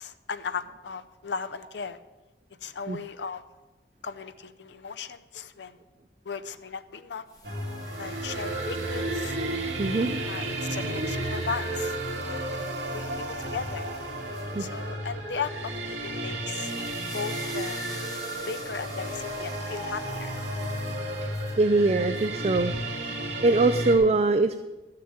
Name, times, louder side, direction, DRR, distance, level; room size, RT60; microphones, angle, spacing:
voice 1, 0.0-2.0 2.6-3.4 4.0-5.8 6.2-7.2 8.0-9.4 10.2-12.0 12.2-12.5 12.9-13.9 14.6-16.7 17.1-17.8 18.5-20.3, left 5 dB, 80° left, 11 dB, 0.6 m, -36 dB
sound 1, 7.3-14.8 16.4-21.6 22.2-22.3, left 3 dB, 20° left, 1.6 m, -48 dB
sound 2, 7.4-24.0, right 1 dB, 85° right, 2.8 m, -32 dB
voice 2, 9.8-10.1 14.5-14.7 21.2-21.3 21.6-22.7 23.1-24.6, right 3 dB, 35° right, 10 dB, 0.4 m, -23 dB
12.0 x 6.8 x 7.9 m, 1.1 s
head